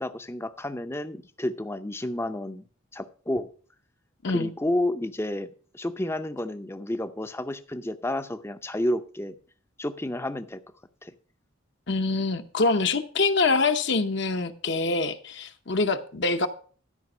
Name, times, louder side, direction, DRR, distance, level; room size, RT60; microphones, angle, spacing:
voice 1, 0.0-2.6 2.9-3.5 4.3-9.4 9.8-10.6 11.0-11.1, left 1 dB, 10° left, 10 dB, 0.5 m, -30 dB
voice 2, 11.9-16.5, left 3 dB, 55° left, 7 dB, 0.8 m, -25 dB
12.5 x 5.2 x 6.1 m, 0.43 s
head